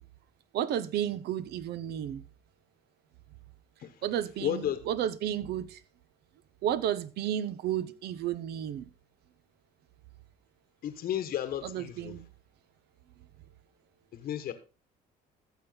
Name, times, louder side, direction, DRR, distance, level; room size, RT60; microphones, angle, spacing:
voice 1, 0.5-2.2 4.0-5.8 6.6-8.9 11.6-12.3, right 10 dB, 75° right, 0.8 m, -32 dB
voice 2, 4.4-4.8 10.8-12.2 14.1-14.5, left 11 dB, 65° left, 1.3 m, -33 dB
13.5 x 7.2 x 4.0 m
cardioid pair, 110°, 17 cm